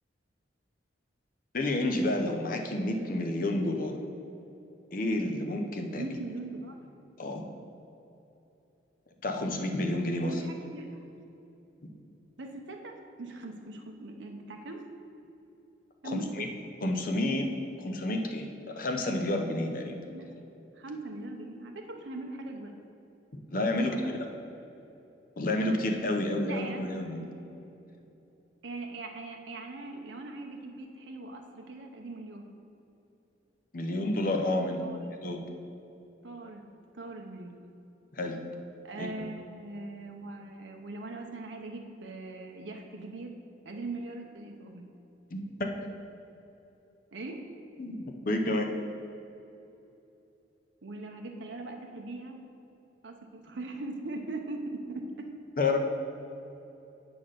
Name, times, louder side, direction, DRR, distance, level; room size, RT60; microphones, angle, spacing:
voice 1, 1.5-3.9 4.9-6.1 7.2-7.4 9.2-10.4 16.0-16.5 16.8-17.5 17.8-20.0 23.5-24.2 25.4-27.3 33.7-34.8 35.2-35.4 38.1-38.4 39.0-39.3 45.3-45.7 47.8-48.7 55.6-55.8, left 1 dB, 50° left, 3 dB, 0.7 m, -30 dB
voice 2, 6.0-6.7 10.2-11.0 12.4-14.9 16.0-16.5 20.1-20.3 20.7-22.7 23.8-24.1 26.4-26.9 28.6-32.4 34.8-35.0 36.2-36.6 36.9-37.6 38.8-43.4 43.6-44.8 47.1-47.4 50.8-52.4 53.0-55.3, right 2 dB, 75° right, 2 dB, 0.7 m, -40 dB
7.9 x 3.9 x 6.6 m, 2.9 s
head